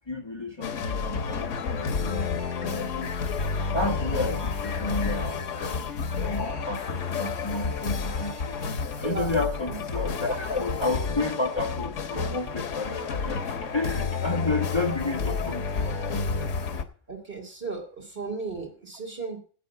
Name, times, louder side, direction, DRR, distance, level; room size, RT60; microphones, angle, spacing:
voice 1, 0.1-3.1 3.7-5.9 6.2-8.6 9.0-13.4 13.7-16.5, left 2 dB, 20° left, 3 dB, 1.4 m, -31 dB
sound 1, 0.6-16.8, left 5 dB, 90° left, 1.3 m, -30 dB
voice 2, 17.1-19.4, right 4 dB, 50° right, 2 dB, 3.1 m, -35 dB
11.0 x 8.3 x 5.7 m, 0.40 s
omnidirectional pair, 1.2 m